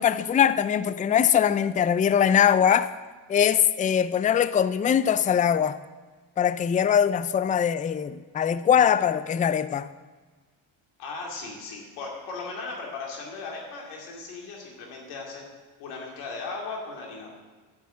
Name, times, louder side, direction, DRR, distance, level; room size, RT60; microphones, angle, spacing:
voice 1, 0.0-2.9 3.3-5.8 6.4-9.9, left 8 dB, 20° left, 0.3 m, -22 dB
voice 2, 11.0-15.5 15.8-17.3, left 3 dB, 90° left, 2.5 m, -37 dB
10.0 x 6.2 x 7.4 m
supercardioid pair, 65°, 49 cm